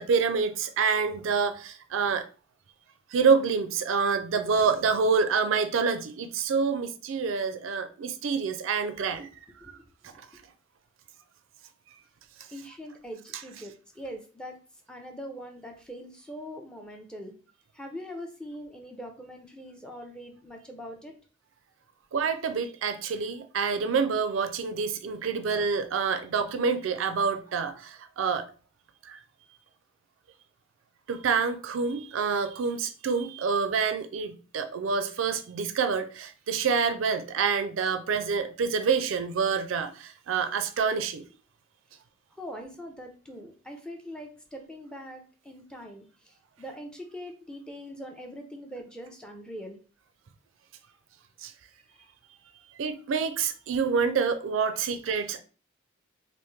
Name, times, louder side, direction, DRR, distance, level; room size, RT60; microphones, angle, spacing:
voice 1, 0.0-2.2 3.1-9.3 22.1-28.5 29.0-29.2 31.1-41.2 51.4-51.5 52.8-55.4, right 5 dB, 70° right, 0.4 m, -27 dB
voice 2, 9.6-10.2 12.5-14.6 14.9-17.3 17.7-21.1 41.9-42.0 42.4-49.8 52.0-52.1, equal, 5° left, 0.5 m, -42 dB
3.5 x 2.5 x 3.1 m
head